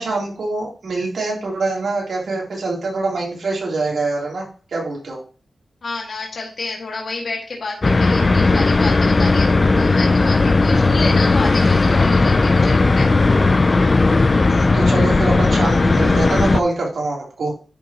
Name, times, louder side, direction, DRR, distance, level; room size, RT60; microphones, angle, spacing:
voice 1, 0.0-5.2 14.5-17.5, right 2 dB, 70° right, -3 dB, 3.2 m, -24 dB
voice 2, 5.8-13.1, left 3 dB, 60° left, -1 dB, 1.9 m, -29 dB
sound 1, 7.8-16.6, left 3 dB, 30° left, 0.5 m, -15 dB
10.0 x 6.1 x 2.9 m, 0.38 s
wide cardioid pair, 140°, 0 cm